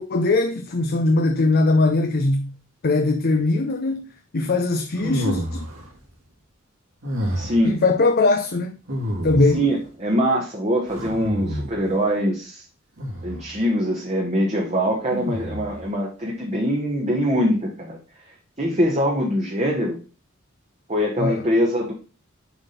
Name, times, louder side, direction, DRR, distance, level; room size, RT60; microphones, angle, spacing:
voice 1, 0.0-2.5 2.8-4.1 4.3-5.7 7.6-8.7 9.2-9.6 21.2-21.5, left 2 dB, 50° left, 0.6 m, -20 dB
sound 1, 5.0-5.9 7.0-7.7 8.9-9.7 10.9-11.9 13.0-13.5 15.1-15.8, equal, 80° right, 2.3 m, -29 dB
voice 2, 7.3-7.8 9.5-12.6 13.2-18.0 18.6-20.0 20.9-21.9, equal, 35° right, 1.4 m, -23 dB
7.2 x 3.6 x 5.7 m
head